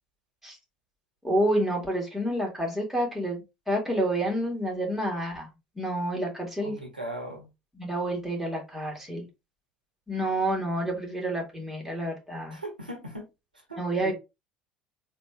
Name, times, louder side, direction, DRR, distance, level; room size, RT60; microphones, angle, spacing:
voice 1, 1.2-6.8 7.8-9.3 10.1-12.6 13.8-14.1, right 1 dB, 5° right, 2.1 m, -29 dB
voice 2, 6.6-7.5 12.5-13.3 13.7-14.1, right 1 dB, 90° right, 1.1 m, -38 dB
4.1 x 2.7 x 3.3 m
figure-of-eight pair, 65°, 4 cm